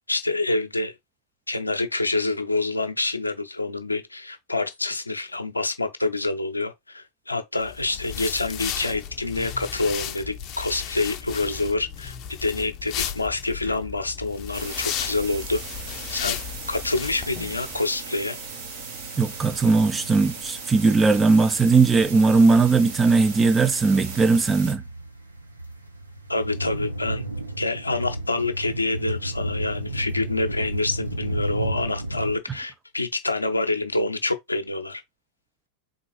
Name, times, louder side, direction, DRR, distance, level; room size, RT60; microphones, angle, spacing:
voice 1, 0.1-1.0 1.5-12.1 12.4-15.6 16.1-16.4 16.7-18.4 26.3-27.2 27.6-35.0, left 2 dB, 85° left, 0.7 m, -27 dB
sound 1, 7.6-17.8, left 9 dB, 35° left, 0.6 m, -34 dB
sound 2, 14.5-24.7, right 4 dB, 55° right, 1.4 m, -37 dB
voice 2, 19.2-24.8, right 4 dB, 15° right, 0.5 m, -19 dB
sound 3, 23.6-32.4, right 1 dB, 80° right, 0.8 m, -32 dB
4.0 x 3.8 x 3.1 m
figure-of-eight pair, 90°, 0 cm